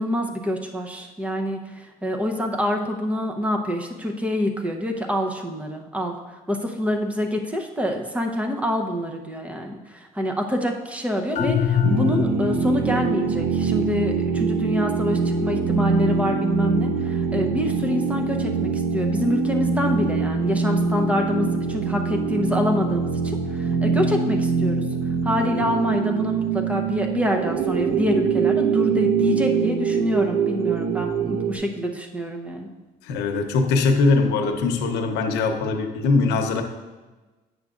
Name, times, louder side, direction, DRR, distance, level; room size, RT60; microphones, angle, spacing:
voice 1, 0.0-6.1 6.5-24.9 25.2-32.7, left 1 dB, 10° right, 3 dB, 0.8 m, -26 dB
sound 1, 11.4-12.8, left 8 dB, 45° left, 0.4 m, -23 dB
sound 2, 11.8-31.6, right 5 dB, 70° right, 0.7 m, -23 dB
voice 2, 33.1-36.6, left 3 dB, 85° left, 5 dB, 0.9 m, -21 dB
9.5 x 6.4 x 2.5 m, 1.2 s
cardioid pair, 110°, 17 cm